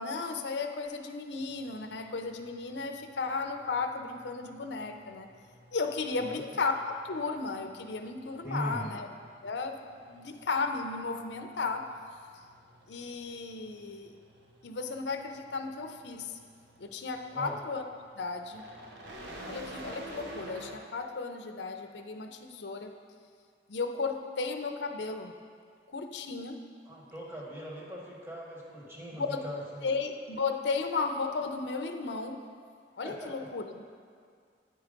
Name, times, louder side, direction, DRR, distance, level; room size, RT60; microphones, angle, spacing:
voice 1, 0.0-5.3 5.7-9.1 9.4-9.8 10.1-11.9 12.9-14.1 14.6-16.3 16.8-17.9 18.2-18.7 19.4-22.9 23.7-25.3 25.9-26.6 29.2-29.4 29.8-32.5 33.0-33.8, left 4 dB, 70° left, 6 dB, 0.6 m, -34 dB
sound 1, 1.4-20.7, right 1 dB, 70° right, 1.0 m, -51 dB
voice 2, 8.4-8.9 17.3-17.5 26.8-29.9 33.0-33.3, equal, 15° right, -4 dB, 1.4 m, -40 dB
9.0 x 4.7 x 5.1 m, 2.2 s
head